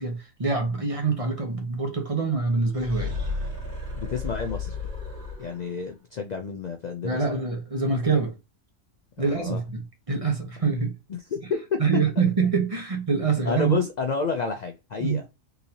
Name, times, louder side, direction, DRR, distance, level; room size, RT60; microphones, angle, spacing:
voice 1, 0.0-3.1 7.0-8.3 9.2-11.0 11.8-13.8 15.0-15.2, right 4 dB, 30° right, 0.8 m, -25 dB
sound 1, 2.7-5.8, left 3 dB, 65° right, 1.9 m, -33 dB
voice 2, 4.0-4.8 5.4-7.4 9.2-9.6 11.1-11.8 13.5-15.2, left 5 dB, 75° left, 0.4 m, -30 dB
3.9 x 2.7 x 2.8 m
omnidirectional pair, 1.3 m